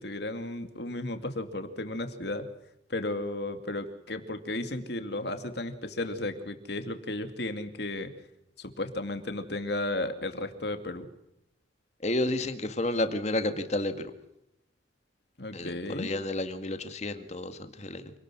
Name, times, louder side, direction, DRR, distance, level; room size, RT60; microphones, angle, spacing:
voice 1, 0.0-2.5 2.9-8.1 8.6-11.1 15.4-16.1, left 2 dB, 60° left, 8 dB, 2.5 m, -34 dB
voice 2, 12.0-14.1 15.5-18.2, left 1 dB, 35° left, 8 dB, 2.0 m, -31 dB
27.0 x 19.0 x 6.2 m, 0.83 s
head